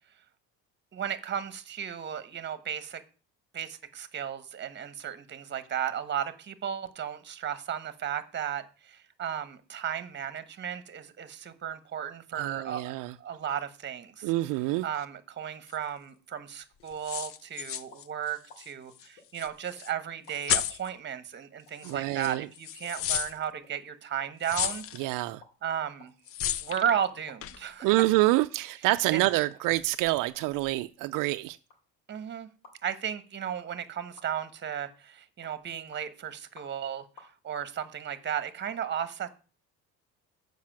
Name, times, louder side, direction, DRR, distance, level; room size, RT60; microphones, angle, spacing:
voice 1, 0.9-3.0 3.5-14.3 14.8-24.8 25.6-26.1 26.6-27.9 29.1-29.2 32.1-32.5 32.8-37.0 37.4-39.3, right 9 dB, 35° right, 1.1 m, -34 dB
voice 2, 12.3-13.1 14.2-14.9 21.8-22.5 25.0-25.4 27.8-31.6, right 19 dB, 80° right, 0.5 m, -27 dB
sound 1, 15.7-15.8 16.9-18.7 19.0-19.1 19.3-19.9 20.3-20.9 21.8-21.9 22.2-23.3 24.4-25.1 26.3-27.0 27.4-27.6, left 10 dB, 45° left, 0.5 m, -33 dB
sound 2, 17.9-18.1 18.5-18.6 19.2-19.8 20.3-20.4 20.9-21.0 21.6-21.7 22.3-22.4 22.8-23.0 23.2-23.3 23.6-23.7 24.2-24.3 24.7-24.9 25.2-25.5 25.8-26.7 27.3-27.9 28.3-28.4 29.0-29.1 29.6-31.4 31.7-31.8 32.6-32.8 33.6-33.9 34.2-34.5 34.9-35.1 35.4-36.0 36.6-36.9 37.2-37.3, left 3 dB, 85° left, 3.5 m, -55 dB
7.4 x 5.4 x 7.4 m
cardioid pair, 125°, 32 cm